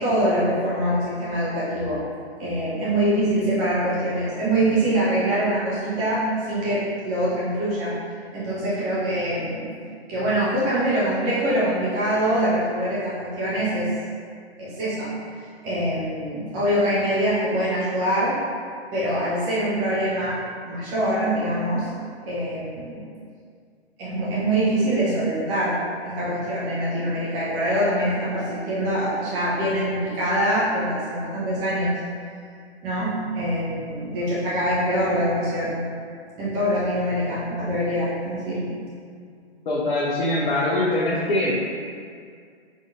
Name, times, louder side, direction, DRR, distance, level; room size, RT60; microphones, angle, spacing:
voice 1, 0.0-2.0 2.4-7.9 8.3-9.7 10.1-13.9 14.6-15.1 15.4-18.4 18.9-20.4 20.6-21.9 22.2-23.0 24.0-25.8 26.0-31.9 32.8-35.8 36.4-38.7, right 1 dB, 10° right, -9 dB, 0.4 m, -24 dB
voice 2, 39.7-41.6, left 1 dB, 50° left, -6 dB, 0.7 m, -23 dB
5.0 x 3.8 x 2.5 m, 2.2 s
figure-of-eight pair, 120°, 33 cm